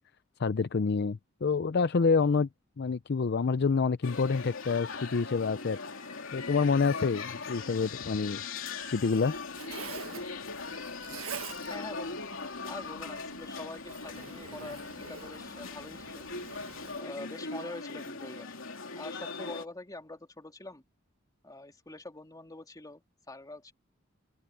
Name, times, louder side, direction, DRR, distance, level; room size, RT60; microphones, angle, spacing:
voice 1, 0.4-2.5 2.8-5.8 6.3-8.4 8.9-9.3, left 4 dB, 55° left, 0.5 m, -27 dB
sound 1, 4.0-19.7, left 4 dB, 75° left, 3.2 m, -40 dB
Zipper (clothing), 8.8-17.0, right 6 dB, 85° right, 1.5 m, -47 dB
voice 2, 11.6-16.3 16.9-18.6 18.9-20.8 21.4-23.7, left 2 dB, 20° left, 2.9 m, -45 dB
open air
head